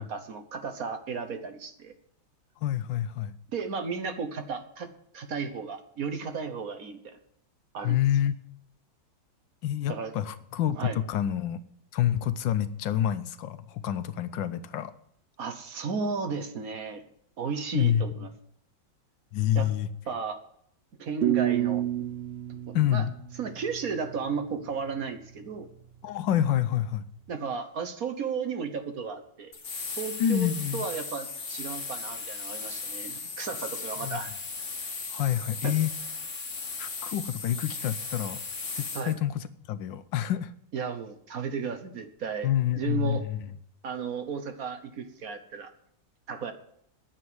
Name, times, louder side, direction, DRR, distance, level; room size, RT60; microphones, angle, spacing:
voice 1, 0.0-1.9 3.5-4.9 5.1-7.2 7.7-8.0 9.9-10.1 10.7-11.0 15.4-17.0 17.4-18.3 19.5-19.7 20.1-20.4 21.0-21.8 22.5-23.1 23.3-25.7 27.3-29.5 30.0-34.3 35.3-35.8 38.9-39.2 40.7-43.3 43.8-45.7 46.3-46.5, right 5 dB, 55° right, 8 dB, 1.4 m, -34 dB
voice 2, 2.6-3.4 7.8-8.3 9.6-11.6 11.9-14.9 17.7-18.0 19.3-19.9 22.7-23.1 26.0-27.1 30.2-30.9 34.0-34.2 35.1-35.9 36.8-38.4 38.7-40.5 42.4-43.4, left 11 dB, 90° left, 13 dB, 1.5 m, -27 dB
sound 1, 21.2-24.2, right 12 dB, 70° right, 0.6 m, -29 dB
sound 2, 29.5-39.1, left 4 dB, 45° left, 1.8 m, -37 dB
10.5 x 7.2 x 9.4 m, 0.69 s
omnidirectional pair, 2.0 m